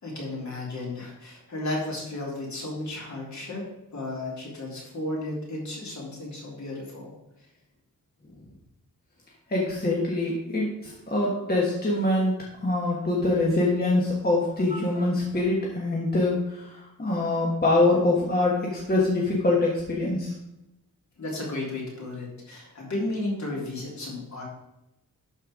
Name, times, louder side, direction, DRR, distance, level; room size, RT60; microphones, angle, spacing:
voice 1, 0.0-3.6 3.9-7.1 21.2-24.4, left 2 dB, 55° left, -3 dB, 3.2 m, -33 dB
voice 2, 9.5-16.7 17.0-20.3, left 2 dB, 30° left, -3 dB, 1.4 m, -24 dB
11.5 x 4.5 x 4.9 m, 0.92 s
wide cardioid pair, 155°, 34 cm